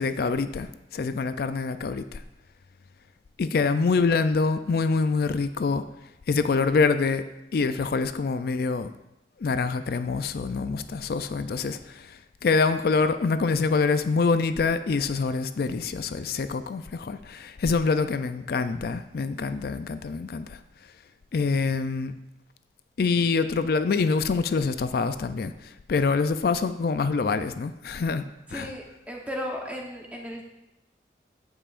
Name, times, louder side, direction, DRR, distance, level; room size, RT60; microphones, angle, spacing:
voice 1, 0.0-2.2 3.4-5.8 6.3-7.2 7.5-8.9 9.4-20.6 21.3-22.1 23.0-28.3 28.5-28.7, left 4 dB, 60° left, 10 dB, 0.4 m, -25 dB
voice 2, 28.5-30.4, equal, 10° right, -1 dB, 1.0 m, -35 dB
15.0 x 5.6 x 2.5 m, 0.90 s
head